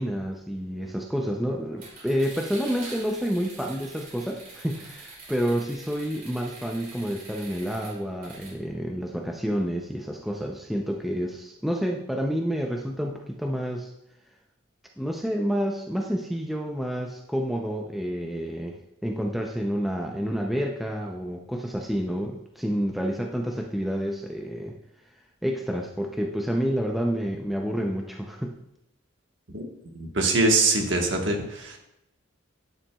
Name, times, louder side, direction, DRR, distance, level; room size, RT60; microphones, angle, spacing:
voice 1, 0.0-13.9 15.0-18.8 19.0-24.8 25.4-28.6, equal, ahead, 1 dB, 0.4 m, -29 dB
windup dino fast, 1.8-8.5, right 3 dB, 45° right, 2.5 m, -45 dB
voice 2, 29.9-31.8, right 2 dB, 65° right, 2 dB, 1.2 m, -23 dB
9.7 x 5.8 x 2.3 m, 0.83 s
head